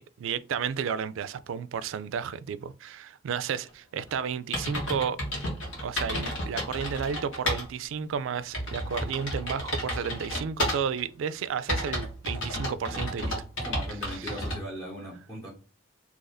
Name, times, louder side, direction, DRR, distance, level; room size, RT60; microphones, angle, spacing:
voice 1, 0.0-5.2 5.8-13.3 14.1-14.3, right 7 dB, 80° right, 0.3 m, -32 dB
sound 1, 4.1-4.2 4.5-7.7 8.0-8.1 8.5-11.0 11.7-14.6, equal, 80° left, 1.4 m, -32 dB
voice 2, 13.6-15.5, equal, 20° left, 0.8 m, -39 dB
2.9 x 2.5 x 4.0 m
head